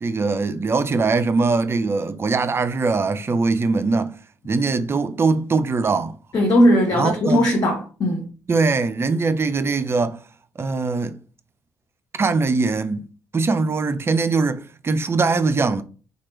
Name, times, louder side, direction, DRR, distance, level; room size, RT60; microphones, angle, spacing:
voice 1, 0.0-4.2 4.4-6.2 7.0-7.5 8.5-10.2 10.6-11.2 12.2-13.1 13.3-15.8, right 4 dB, 30° right, 0.4 m, -21 dB
voice 2, 6.3-8.3, equal, 45° left, 0.8 m, -18 dB
2.9 x 2.3 x 3.1 m
figure-of-eight pair, 40°, 9 cm